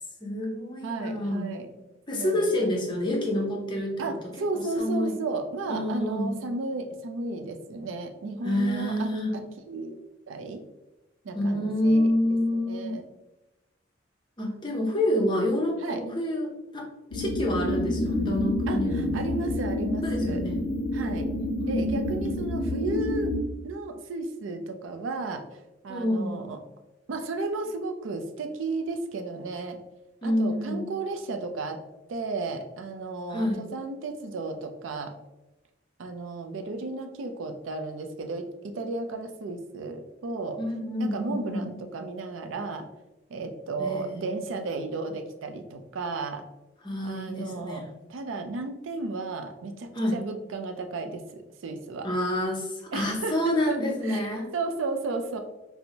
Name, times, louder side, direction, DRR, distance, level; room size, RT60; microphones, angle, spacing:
voice 1, 0.2-1.5 2.1-4.3 4.5-5.2 5.7-6.4 8.4-9.4 11.3-12.9 14.4-16.9 17.1-19.2 20.0-20.6 21.6-21.7 22.1-22.4 25.9-26.4 30.2-30.9 33.3-33.7 40.6-41.7 43.8-44.4 46.8-47.9 49.9-50.2 52.0-54.5, left 1 dB, 25° left, -1 dB, 0.6 m, -28 dB
voice 2, 0.8-1.7 2.1-2.7 4.0-9.1 9.3-10.0 10.3-10.6 11.2-12.1 12.7-13.0 15.8-16.0 18.7-20.4 20.9-21.3 21.7-23.3 23.6-25.5 25.8-26.6 27.1-29.8 30.2-31.8 32.1-35.1 36.0-40.6 41.0-42.9 43.3-46.4 47.0-47.8 48.1-52.1 52.9-55.4, right 3 dB, 90° right, 6 dB, 0.4 m, -33 dB
sound 1, 17.1-23.4, left 1 dB, 85° left, 0.4 m, -28 dB
4.3 x 2.0 x 2.7 m, 0.99 s
head